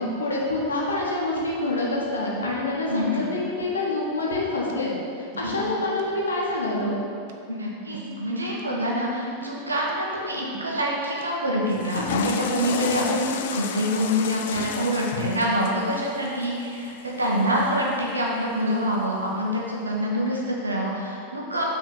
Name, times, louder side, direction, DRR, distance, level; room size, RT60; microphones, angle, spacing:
voice 1, 0.0-4.9 5.2-6.9, left 2 dB, 70° left, -4 dB, 1.4 m, -26 dB
sound 1, 1.0-1.1 4.0-4.7 5.0-6.1 6.3-7.3 7.6-8.6 9.1-9.9 10.2-11.2 11.5-12.6 12.8-13.8 14.4-14.8, right 2 dB, 55° right, 0.5 m, -43 dB
voice 2, 2.9-3.2 5.4-5.9 7.5-21.7, equal, 80° right, -3 dB, 1.1 m, -26 dB
Water / Toilet flush, 11.7-17.9, left 7 dB, 55° left, 0.4 m, -33 dB
6.2 x 3.9 x 5.6 m, 2.5 s
figure-of-eight pair, 90°, 0 cm